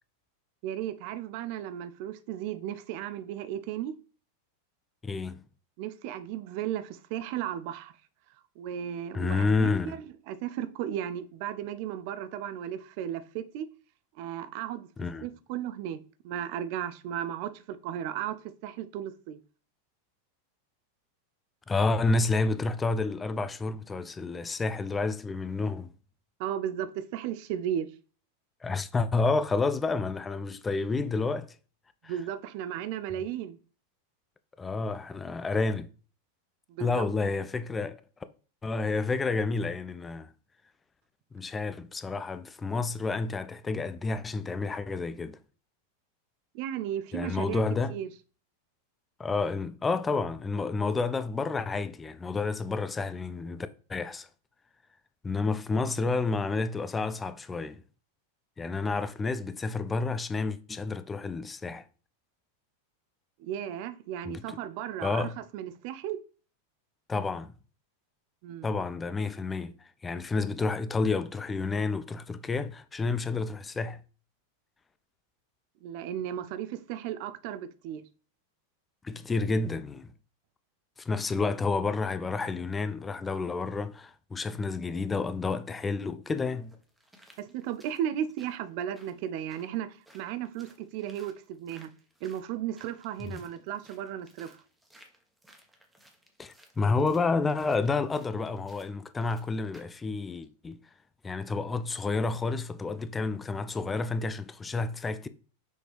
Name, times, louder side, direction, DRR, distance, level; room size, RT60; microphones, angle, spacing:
voice 1, 0.6-3.9 5.8-7.9 8.6-13.7 14.2-14.9 15.2-16.0 16.2-18.4 18.6-19.4 26.4-27.9 32.0-33.6 36.7-37.1 46.5-47.6 47.9-48.1 63.4-66.2 68.4-68.7 75.8-78.0 87.4-91.9 92.2-94.6, right 10 dB, 45° right, 0.5 m, -35 dB
voice 2, 5.0-5.4 9.1-10.0 15.0-15.3 21.7-25.9 28.6-31.5 32.0-32.1 34.6-35.9 36.8-38.0 38.6-40.3 41.3-45.4 47.1-47.9 49.2-54.3 55.2-57.8 58.6-61.8 64.2-64.6 65.0-65.3 67.1-67.5 68.6-74.0 79.0-80.1 81.0-86.7 93.2-93.3 96.4-100.8 101.2-105.3, left 3 dB, 15° left, 0.4 m, -30 dB
sound 1, 86.4-100.0 100.4-100.5, right 1 dB, 5° right, 1.3 m, -60 dB
6.3 x 4.5 x 3.4 m
figure-of-eight pair, 90°, 0 cm